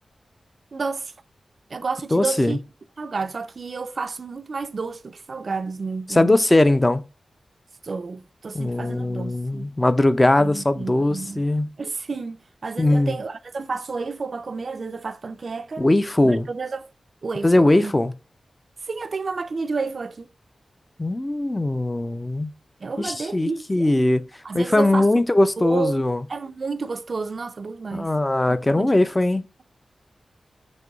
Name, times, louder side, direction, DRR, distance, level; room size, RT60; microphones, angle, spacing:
voice 1, 0.7-1.1 1.7-2.6 3.0-6.4 7.8-9.7 10.4-11.4 11.8-15.9 16.2-16.9 17.2-17.9 18.8-20.3 22.8-23.9 24.4-25.2 25.6-26.0 26.3-28.1 28.5-29.0, right 4 dB, 55° right, 0.3 m, -31 dB
voice 2, 2.1-2.6 6.1-7.0 8.5-11.7 12.8-13.2 15.8-16.5 17.4-18.1 21.0-22.5 23.0-24.2 24.5-26.2 27.9-29.5, left 1 dB, 20° left, 0.4 m, -20 dB
5.3 x 2.9 x 2.3 m
wide cardioid pair, 100°, 0 cm